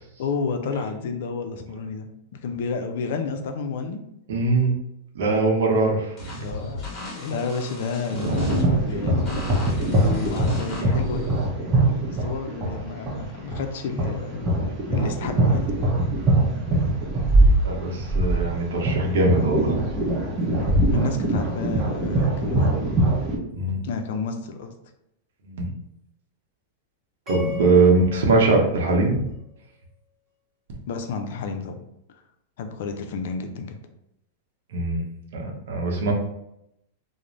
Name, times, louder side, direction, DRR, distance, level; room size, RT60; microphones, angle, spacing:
voice 1, 0.2-4.0 6.3-9.4 9.9-11.2 11.9-14.5 14.9-15.6 20.9-22.8 23.8-24.7 30.9-31.8 32.6-33.8, left 5 dB, 70° left, 6 dB, 0.4 m, -30 dB
voice 2, 4.3-4.8 5.1-6.3 8.1-8.6 17.6-19.8 23.5-23.8 25.4-25.7 27.3-29.3 34.7-35.0 35.3-36.1, right 3 dB, 75° right, 1 dB, 0.7 m, -21 dB
sound 1, 6.2-11.5, left 1 dB, 30° left, 1.0 m, -36 dB
sound 2, 8.4-23.4, right 1 dB, 25° right, 0.7 m, -22 dB
sound 3, 27.3-29.6, left 5 dB, 5° right, 1.2 m, -38 dB
2.4 x 2.0 x 3.1 m, 0.81 s
hypercardioid pair, 130°, 0 cm